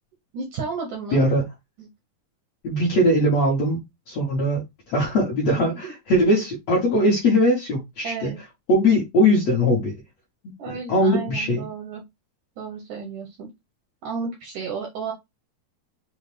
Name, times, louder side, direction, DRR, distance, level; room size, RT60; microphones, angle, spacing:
voice 1, 0.3-1.3 1.8-1.9 5.6-5.9 8.0-8.4 10.6-12.0 12.6-13.5 14.0-15.1, right 5 dB, 75° right, 1.9 m, -33 dB
voice 2, 1.1-1.5 2.6-8.3 8.7-9.9 10.6-11.6, equal, 65° left, 1.7 m, -21 dB
6.3 x 2.2 x 3.2 m
omnidirectional pair, 4.6 m